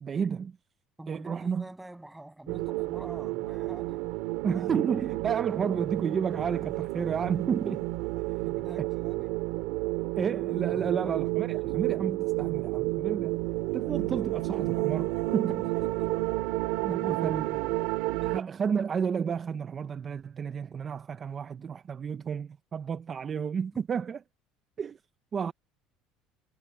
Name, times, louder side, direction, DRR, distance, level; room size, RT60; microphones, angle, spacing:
voice 1, 0.0-0.5 1.1-1.6 4.4-7.9 8.8-8.9 10.2-13.4 13.7-15.7 16.8-17.6 18.3-24.2 24.8-25.0 25.3-25.5, right 7 dB, 30° right, 0.6 m, -31 dB
voice 2, 1.0-4.1 8.4-9.3 10.7-11.2 15.4-15.5 15.8-16.3 16.8-17.3 17.6-18.4, right 1 dB, 5° right, 7.9 m, -47 dB
sound 1, 2.5-18.4, right 21 dB, 80° right, 2.5 m, -31 dB
cardioid pair, 145°, 0 cm